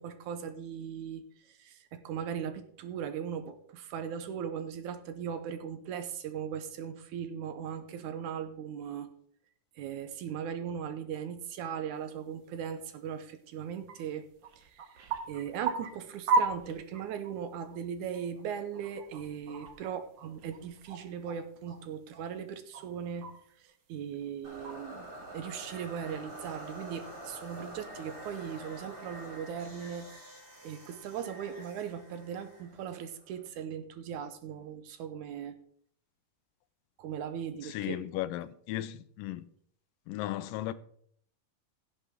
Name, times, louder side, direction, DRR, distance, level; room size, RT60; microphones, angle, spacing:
voice 1, 0.0-9.1 9.8-14.3 14.6-30.1 30.6-35.6 37.0-38.0, right 8 dB, 75° right, 2.1 m, -39 dB
sound 1, 12.5-12.6 12.9-13.0 13.3-13.4 13.6-13.9 14.2-17.3 17.7-17.8 18.1-21.8 22.1-23.7 24.1-25.1 25.5-27.9 28.4-28.5 29.4-29.8, right 3 dB, 50° right, 1.4 m, -36 dB
sound 2, 24.4-33.5, right 1 dB, 30° right, 3.8 m, -47 dB
voice 2, 37.6-39.5 40.1-40.7, left 14 dB, 85° left, 2.3 m, -36 dB
16.5 x 8.2 x 3.7 m
omnidirectional pair, 3.9 m